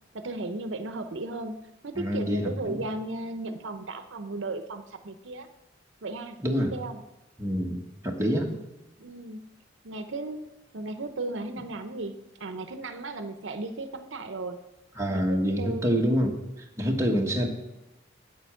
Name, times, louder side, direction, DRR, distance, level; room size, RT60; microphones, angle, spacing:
voice 1, 0.1-1.6 1.8-5.5 6.0-6.4 6.7-7.0 8.3-8.7 9.0-9.5 9.8-10.4 10.7-14.6 15.1-16.1 16.8-17.1, right 2 dB, 75° right, 9 dB, 0.8 m, -35 dB
voice 2, 1.9-2.8 6.4-6.7 7.4-8.5 15.0-17.5, equal, 15° right, 0 dB, 1.3 m, -27 dB
8.6 x 8.0 x 6.3 m, 0.94 s
head